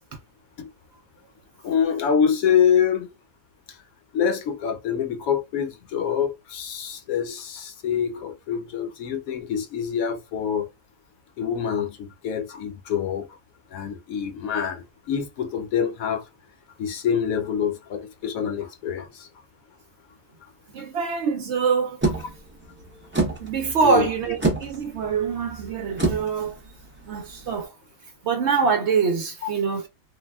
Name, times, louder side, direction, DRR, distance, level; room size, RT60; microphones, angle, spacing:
voice 1, 1.6-3.1 3.7-3.8 4.1-10.7 11.4-13.3 13.7-16.2 16.8-19.3 23.8-24.1, left 8 dB, 75° left, 1.0 m, -25 dB
voice 2, 20.7-22.0 23.4-26.6 27.1-27.7 28.2-29.8, right 5 dB, 65° right, 0.7 m, -24 dB
sound 1, 22.0-27.6, right 3 dB, 20° right, 0.3 m, -29 dB
3.3 x 2.2 x 2.2 m
omnidirectional pair, 1.5 m